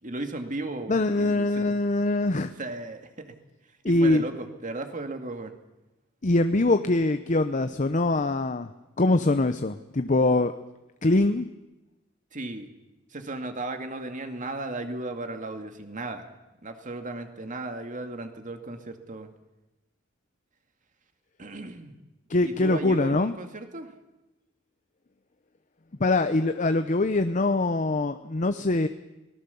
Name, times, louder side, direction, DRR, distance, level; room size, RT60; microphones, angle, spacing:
voice 1, 0.0-1.8 2.6-3.4 3.8-5.5 12.3-12.7 13.1-16.4 16.6-19.3 21.4-21.9 22.4-23.9, right 2 dB, 40° right, 6 dB, 2.2 m, -35 dB
voice 2, 0.9-2.5 3.8-4.2 6.2-8.7 9.0-10.5 11.0-11.5 22.3-23.3 26.0-28.9, left 2 dB, 40° left, 9 dB, 0.8 m, -23 dB
24.5 x 19.0 x 7.0 m, 1.0 s
head